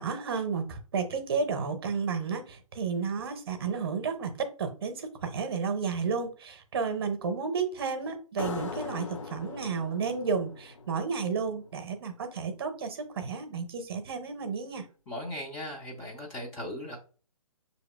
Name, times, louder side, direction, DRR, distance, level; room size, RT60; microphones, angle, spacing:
voice 1, 0.0-4.3 4.6-14.8, right 5 dB, 45° right, 8 dB, 0.7 m, -32 dB
sound 1, 8.4-11.7, left 4 dB, 55° left, 0.9 m, -40 dB
voice 2, 15.1-17.0, left 1 dB, 10° left, -2 dB, 0.4 m, -38 dB
6.2 x 2.8 x 2.2 m, 0.38 s
figure-of-eight pair, 135°, 18 cm